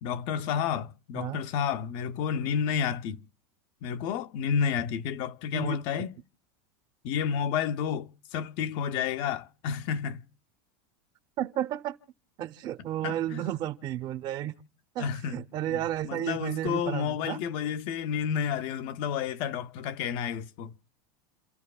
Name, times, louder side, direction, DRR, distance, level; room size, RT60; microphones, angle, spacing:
voice 1, 0.0-3.2 3.8-6.1 7.0-10.2 13.0-13.4 15.0-15.4 16.0-20.7, left 7 dB, 45° left, 0.6 m, -30 dB
voice 2, 5.5-6.1 11.4-12.0 12.4-14.5 14.9-17.4, right 12 dB, 35° right, 0.7 m, -32 dB
29.0 x 13.0 x 2.3 m
supercardioid pair, 155°, 12 cm